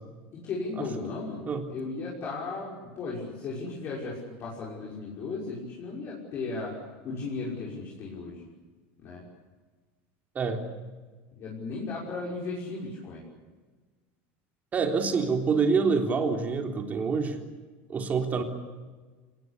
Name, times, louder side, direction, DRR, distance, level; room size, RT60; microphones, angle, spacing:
voice 1, 0.4-6.8 7.0-8.4 9.0-9.2 11.3-13.2, left 3 dB, 40° left, -4 dB, 6.0 m, -36 dB
voice 2, 14.7-17.4 17.9-18.4, right 5 dB, 25° right, 4 dB, 3.5 m, -26 dB
27.0 x 19.5 x 8.5 m, 1.4 s
supercardioid pair, 145°, 6 cm